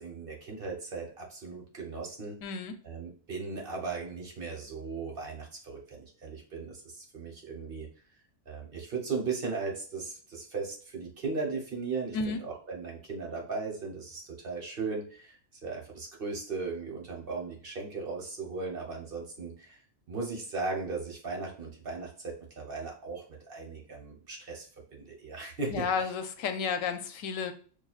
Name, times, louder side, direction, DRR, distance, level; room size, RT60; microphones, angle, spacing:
voice 1, 0.0-2.4 2.8-7.9 8.5-19.8 20.1-24.7 24.9-25.9, right 4 dB, 50° right, 0 dB, 1.0 m, -37 dB
voice 2, 2.4-2.7 12.1-12.4 25.7-27.5, left 5 dB, 80° left, 8 dB, 1.0 m, -32 dB
5.9 x 2.4 x 2.3 m, 0.42 s
omnidirectional pair, 1.4 m